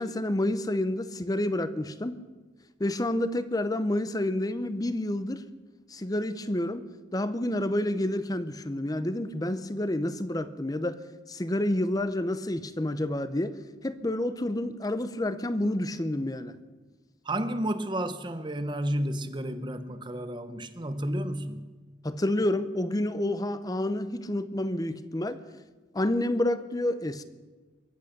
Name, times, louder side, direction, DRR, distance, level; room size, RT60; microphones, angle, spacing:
voice 1, 0.0-2.2 2.8-5.4 5.9-11.0 11.3-13.6 13.8-16.6 22.0-25.4 25.9-27.2, left 1 dB, 20° left, 0.7 m, -29 dB
voice 2, 17.2-21.7, right 1 dB, 25° right, 0.9 m, -31 dB
23.0 x 8.3 x 6.6 m
head